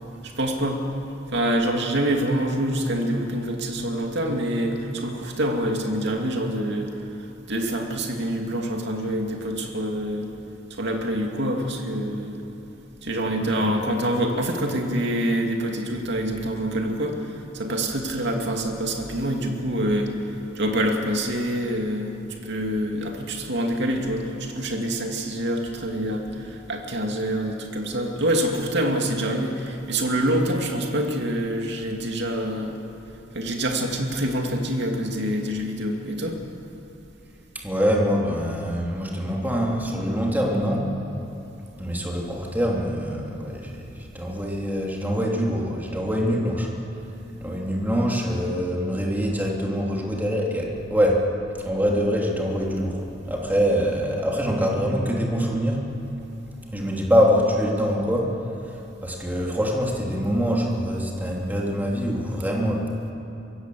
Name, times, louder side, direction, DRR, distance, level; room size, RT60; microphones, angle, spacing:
voice 1, 0.2-0.8 1.3-6.9 7.2-10.3 10.7-12.4 13.0-22.1 22.4-32.8 33.3-36.4, right 1 dB, 60° right, 2 dB, 2.5 m, -26 dB
voice 2, 13.3-13.7 37.5-40.9 41.8-46.7 47.4-51.2 51.6-55.9 56.7-63.1, equal, 10° right, -2 dB, 2.8 m, -24 dB
24.0 x 16.5 x 7.7 m, 2.9 s
head